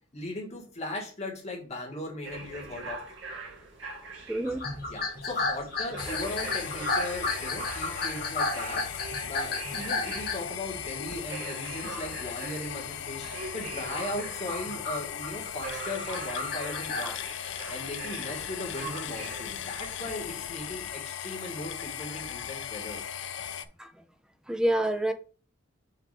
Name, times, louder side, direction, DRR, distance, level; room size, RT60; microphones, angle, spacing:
voice 1, 0.1-3.0 4.9-8.8 9.2-17.1 17.7-23.1, left 2 dB, 35° left, 2.0 m, -38 dB
sound 1, 2.2-20.6, right 4 dB, 65° right, 1.8 m, -43 dB
voice 2, 4.3-4.6 17.0-17.2 17.6-17.7 23.8-23.9 24.5-25.1, right 1 dB, 5° right, 0.4 m, -27 dB
sound 2, 4.5-11.1 11.6-12.1 12.4-12.8 13.1-13.3 13.9-17.1, left 3 dB, 50° left, 1.7 m, -33 dB
sound 3, 6.0-23.6, left 9 dB, 70° left, 0.5 m, -38 dB
6.7 x 3.1 x 5.0 m
head